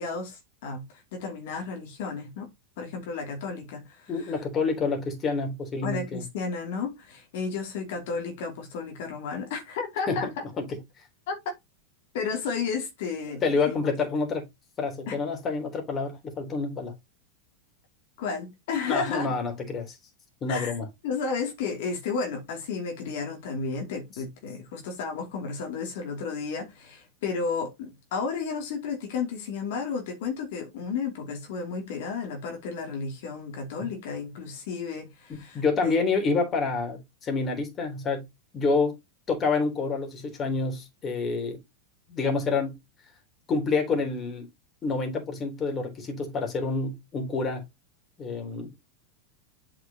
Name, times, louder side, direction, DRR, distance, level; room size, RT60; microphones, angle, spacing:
voice 1, 0.0-2.5 2.8-4.4 5.8-10.3 11.3-11.4 12.1-13.8 15.1-15.2 18.2-19.4 20.5-20.8 21.0-36.0, left 5 dB, 70° left, 2.8 m, -33 dB
voice 2, 4.1-6.2 10.1-10.2 13.4-14.5 14.8-16.9 18.9-20.0 20.4-20.9 35.3-38.3 38.5-39.0 39.3-41.6 42.1-42.8 43.5-44.5 44.8-47.7 48.2-48.7, left 4 dB, 25° left, 3.5 m, -28 dB
8.3 x 5.9 x 2.9 m
supercardioid pair, 135°, 0 cm